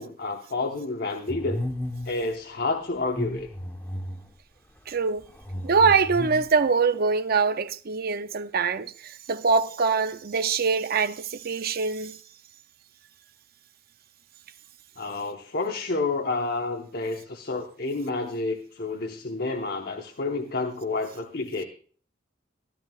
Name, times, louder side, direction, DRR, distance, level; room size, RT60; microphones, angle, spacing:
voice 1, 0.0-1.6 2.0-3.5 15.0-21.6, left 3 dB, 55° left, 1.0 m, -29 dB
sound 1, 1.3-2.2 3.0-4.3 5.2-6.6, left 1 dB, 10° left, 1.0 m, -33 dB
voice 2, 4.9-5.2 5.6-12.2, right 5 dB, 50° right, 0.5 m, -24 dB
14.0 x 12.5 x 2.3 m
head